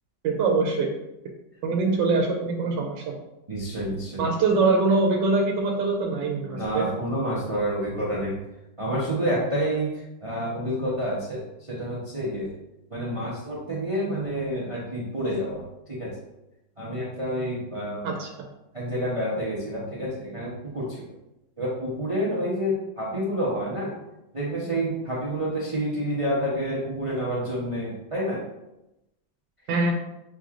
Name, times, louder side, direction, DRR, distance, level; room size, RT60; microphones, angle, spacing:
voice 1, 0.2-0.9 1.6-3.2 4.2-6.9 18.0-18.3 29.7-29.9, right 3 dB, 80° right, 1 dB, 1.2 m, -23 dB
voice 2, 3.5-4.2 6.6-8.4 8.8-12.5 12.9-16.1 16.8-18.0 18.7-21.0 21.6-23.9 24.3-28.4, equal, 40° right, -6 dB, 0.4 m, -28 dB
6.3 x 3.0 x 2.4 m, 0.91 s
omnidirectional pair, 2.0 m